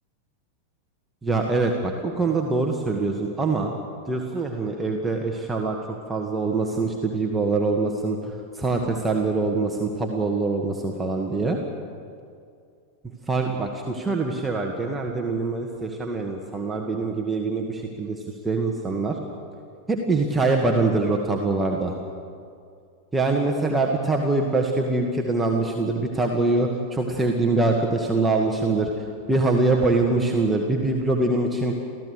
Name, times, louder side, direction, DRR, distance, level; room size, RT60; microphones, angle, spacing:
voice 1, 1.2-3.7 4.1-11.6 13.3-19.2 19.9-22.0 23.1-28.9 29.3-31.7, right 3 dB, 10° right, 1 dB, 1.8 m, -24 dB
29.5 x 15.5 x 6.6 m, 2.3 s
figure-of-eight pair, 90°, 0 cm